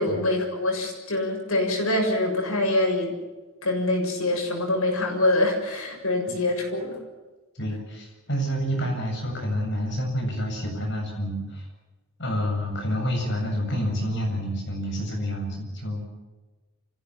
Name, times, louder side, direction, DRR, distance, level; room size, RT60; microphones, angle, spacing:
voice 1, 0.0-3.2 3.6-7.0, left 2 dB, 75° left, 1 dB, 7.1 m, -25 dB
voice 2, 7.5-11.7 12.2-16.0, equal, 55° left, 1 dB, 7.5 m, -28 dB
29.0 x 16.0 x 7.4 m, 1.3 s
head